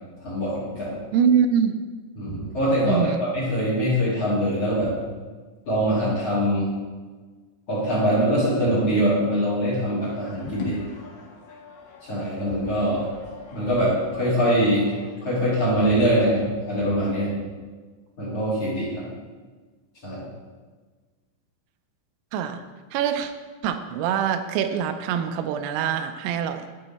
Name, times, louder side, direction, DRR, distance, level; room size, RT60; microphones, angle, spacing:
voice 1, 0.2-0.9 2.2-4.9 5.7-6.7 7.7-10.8 12.0-13.0 13.5-14.8 15.2-17.4 18.2-19.0 20.0-20.2, equal, 40° left, -9 dB, 2.6 m, -23 dB
voice 2, 1.1-1.8 2.8-3.2 22.3-22.6 22.9-23.3 23.6-26.7, right 8 dB, 85° right, 8 dB, 3.3 m, -24 dB
sound 1, 10.0-15.1, left 2 dB, 65° left, 2.5 m, -41 dB
10.0 x 5.6 x 4.1 m, 1.4 s
omnidirectional pair, 5.8 m